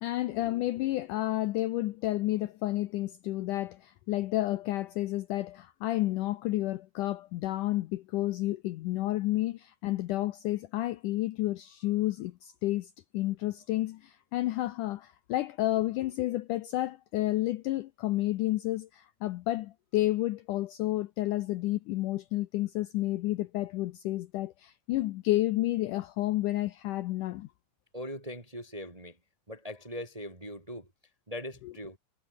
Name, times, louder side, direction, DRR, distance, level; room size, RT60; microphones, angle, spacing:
voice 1, 0.0-27.5, left 16 dB, 90° left, 1.8 m, -31 dB
voice 2, 27.9-29.2 29.5-30.9 31.3-32.0, equal, 15° right, 1.2 m, -40 dB
omnidirectional pair, 4.6 m